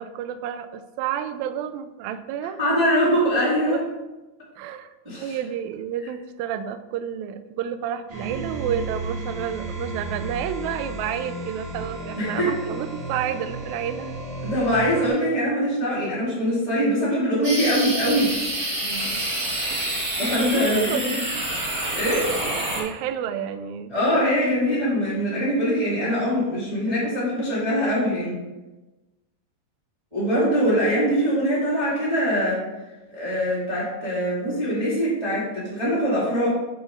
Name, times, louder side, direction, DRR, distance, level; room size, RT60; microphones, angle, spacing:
voice 1, 0.0-2.6 3.4-3.8 4.6-4.9 5.2-14.1 18.8-19.2 19.7-21.4 22.8-24.0 24.7-24.8, right 9 dB, 85° right, 9 dB, 1.7 m, -31 dB
voice 2, 2.6-3.8 5.0-5.4 12.2-12.5 14.4-18.4 20.2-21.0 21.9-22.3 23.9-28.4 30.1-32.6 33.1-36.5, equal, 15° right, -9 dB, 1.7 m, -23 dB
sound 1, 8.1-15.1, right 2 dB, 60° right, 3.0 m, -33 dB
sound 2, 17.4-22.8, right 1 dB, 40° right, 1.5 m, -27 dB
8.0 x 6.9 x 2.6 m, 1.1 s
omnidirectional pair, 3.7 m